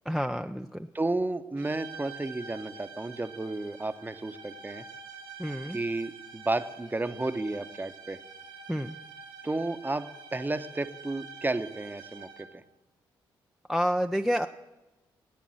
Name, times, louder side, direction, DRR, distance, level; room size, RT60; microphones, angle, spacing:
voice 1, 0.1-0.9 5.4-5.8 8.7-9.0 13.7-14.5, equal, ahead, 7 dB, 0.5 m, -29 dB
voice 2, 0.9-4.9 5.7-8.2 9.4-12.6, right 2 dB, 15° right, 11 dB, 0.9 m, -32 dB
sound 1, 1.6-12.7, right 5 dB, 85° right, 1.1 m, -46 dB
14.5 x 9.2 x 6.3 m, 1.1 s
hypercardioid pair, 45°, 11 cm